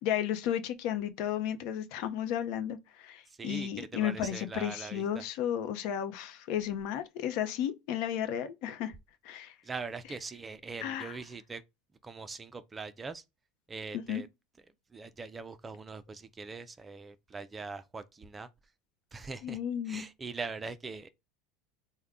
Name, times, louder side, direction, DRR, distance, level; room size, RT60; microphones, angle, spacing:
voice 1, 0.0-8.9 9.2-9.6 10.8-11.2 13.9-14.2 19.4-20.0, left 10 dB, 60° left, 0.7 m, -33 dB
voice 2, 3.3-5.2 9.6-11.6 12.0-13.2 13.7-14.3 14.9-18.5 19.1-19.6 19.9-21.1, right 4 dB, 15° right, 0.4 m, -42 dB
3.5 x 2.1 x 3.6 m
supercardioid pair, 125°, 0 cm